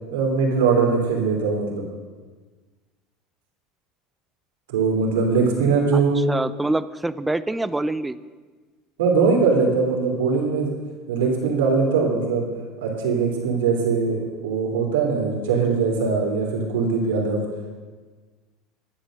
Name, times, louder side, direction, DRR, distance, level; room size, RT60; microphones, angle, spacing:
voice 1, 0.1-1.8 4.7-6.2 9.0-10.7 11.1-12.5 12.8-17.4, right 4 dB, 90° right, 0 dB, 3.1 m, -21 dB
voice 2, 5.9-8.2, right 2 dB, 10° right, 15 dB, 0.6 m, -26 dB
10.5 x 10.5 x 6.4 m, 1.4 s
supercardioid pair, 95°, 0 cm